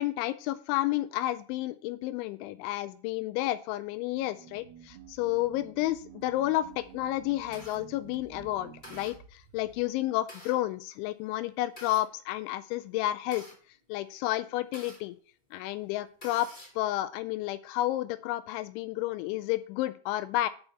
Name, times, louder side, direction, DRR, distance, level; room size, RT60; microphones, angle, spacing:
voice 1, 0.0-13.5 13.9-15.2 15.5-16.5 16.8-20.5, left 15 dB, 85° left, 13 dB, 2.7 m, -31 dB
sound 1, 4.0-9.2, right 11 dB, 85° right, 2.2 m, -51 dB
sound 2, 4.5-9.9, right 5 dB, 70° right, 2.8 m, -58 dB
sound 3, 6.8-7.8 8.3-8.5 8.8-9.1 9.9-10.6 11.5-12.0 12.8-15.0 15.6-15.7 15.9-16.8, equal, 25° left, 0.9 m, -48 dB
6.8 x 5.3 x 7.0 m, 0.43 s
omnidirectional pair, 5.7 m